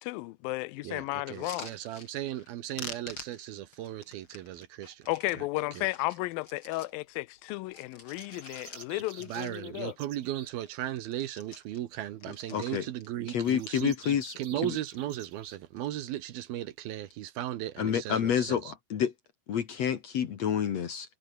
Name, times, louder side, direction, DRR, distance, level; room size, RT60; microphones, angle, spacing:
voice 1, 0.0-1.7 5.1-10.0, left 20 dB, 80° left, 2.2 m, -34 dB
voice 2, 0.8-5.0 5.8-5.9 9.3-18.7, right 13 dB, 75° right, 3.0 m, -36 dB
sound 1, 1.3-2.5 2.8-5.4 5.8-7.0 7.4-9.8 10.2-10.3 10.5-10.8 11.1-13.1 13.5-14.2 14.7-15.2 15.5-16.0 16.9-17.2, left 3 dB, 30° left, 6.7 m, -47 dB
sound 2, 8.2-10.5 13.4-15.6, right 7 dB, 55° right, 4.0 m, -50 dB
voice 3, 12.5-12.9 13.3-14.3 14.6-14.8 17.8-19.1 19.5-21.2, left 8 dB, 55° left, 2.2 m, -29 dB
omnidirectional pair, 4.6 m